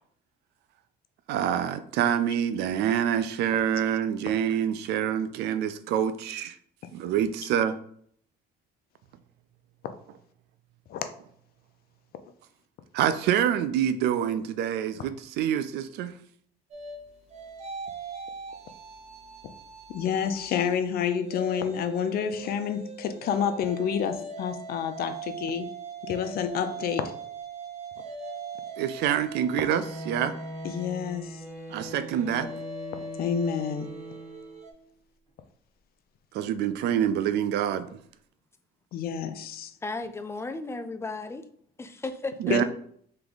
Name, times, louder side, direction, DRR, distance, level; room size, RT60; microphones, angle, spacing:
voice 1, 1.3-6.6 6.9-7.8 12.9-16.2 22.4-22.5 28.8-30.3 31.7-32.5 36.3-38.0 42.4-42.6, right 9 dB, 80° right, 0.4 m, -26 dB
sound 1, 16.7-20.8 21.2-34.7, right 3 dB, 40° right, 0.8 m, -41 dB
voice 2, 19.9-25.7 26.0-27.1 30.6-31.4 31.9-32.0 33.2-33.9 38.9-39.7 42.5-42.6, left 8 dB, 65° left, 0.6 m, -29 dB
Bowed string instrument, 29.4-34.7, right 1 dB, 15° right, 1.6 m, -41 dB
voice 3, 39.8-41.4 41.8-42.3, left 3 dB, 15° left, 0.4 m, -34 dB
3.4 x 3.3 x 3.9 m
cardioid pair, 110°, 17 cm